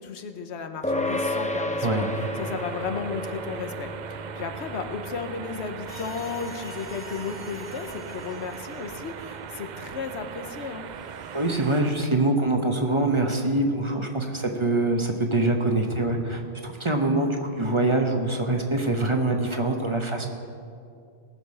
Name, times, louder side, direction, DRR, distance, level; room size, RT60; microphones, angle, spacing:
voice 1, 0.0-2.1 2.4-10.9, left 5 dB, 85° left, 7 dB, 1.1 m, -34 dB
sound 1, 0.8-10.5, left 1 dB, 10° left, 0.6 m, -34 dB
sound 2, 1.8-11.9, right 8 dB, 55° right, 0.5 m, -40 dB
sound 3, 5.9-9.6 10.5-10.6 10.9-11.8, equal, 40° left, 1.5 m, -48 dB
voice 2, 11.3-20.3, right 2 dB, 30° right, 3 dB, 1.0 m, -24 dB
19.0 x 6.9 x 5.5 m, 2.4 s
omnidirectional pair, 1.1 m